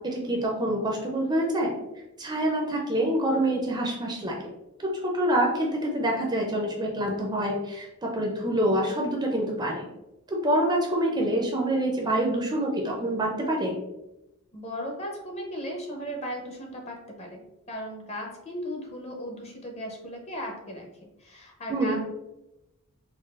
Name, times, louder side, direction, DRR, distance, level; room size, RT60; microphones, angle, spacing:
voice 1, 0.0-1.7 2.2-4.4 4.8-9.9 10.3-13.7 21.7-22.0, right 1 dB, 20° right, -1 dB, 0.4 m, -26 dB
voice 2, 14.5-17.4 17.7-22.0, equal, 30° left, 1 dB, 0.6 m, -36 dB
3.8 x 2.3 x 2.3 m, 0.93 s
head